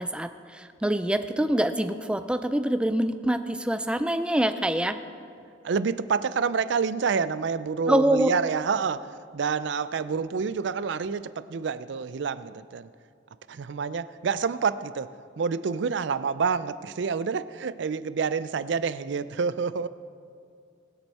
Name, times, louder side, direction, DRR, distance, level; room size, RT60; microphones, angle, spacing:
voice 1, 0.0-5.0 7.9-8.3, right 1 dB, 5° right, 10 dB, 0.4 m, -25 dB
voice 2, 5.6-12.9 13.5-15.1 15.4-19.9, right 5 dB, 65° right, 15 dB, 0.4 m, -28 dB
21.0 x 8.0 x 4.2 m, 2.4 s
head